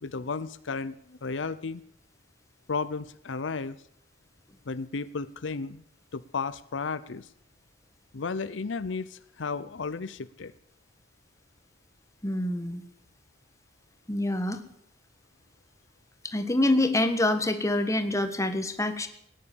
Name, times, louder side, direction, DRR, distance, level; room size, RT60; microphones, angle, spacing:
voice 1, 0.0-1.8 2.7-3.8 4.7-5.8 6.1-7.3 8.1-10.5, left 4 dB, 85° left, 15 dB, 0.7 m, -33 dB
voice 2, 12.2-12.8 14.1-14.6 16.2-19.1, left 1 dB, 15° left, 8 dB, 1.5 m, -26 dB
18.5 x 10.0 x 7.1 m, 0.71 s
head